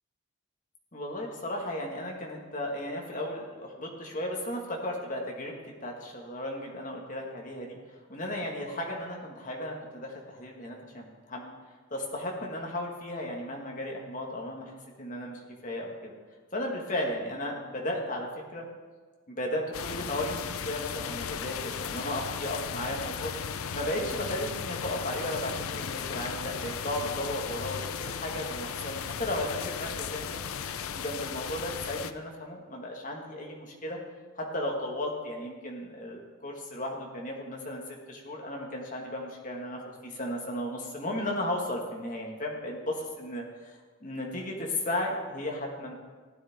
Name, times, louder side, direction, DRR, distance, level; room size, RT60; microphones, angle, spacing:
voice 1, 0.9-5.5 5.8-7.8 8.1-11.5 11.9-16.1 16.5-18.7 19.3-23.3 23.7-30.4 30.9-34.0 34.4-37.8 38.1-45.9, left 1 dB, 35° left, 0 dB, 1.8 m, -35 dB
sound 1, 19.7-32.1, left 7 dB, 85° left, 0.5 m, -36 dB
15.5 x 9.9 x 3.7 m, 1.5 s
head